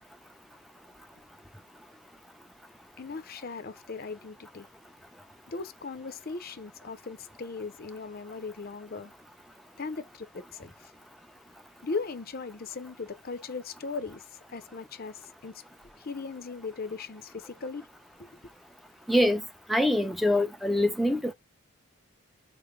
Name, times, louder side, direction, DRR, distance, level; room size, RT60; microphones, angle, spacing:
voice 1, 3.0-4.7 5.5-9.1 9.8-10.9 11.8-15.6 16.0-17.9 18.2-18.4, left 4 dB, 45° left, 0.6 m, -38 dB
voice 2, 19.1-19.4 19.7-21.3, left 1 dB, ahead, 0.5 m, -24 dB
5.0 x 2.1 x 3.2 m
head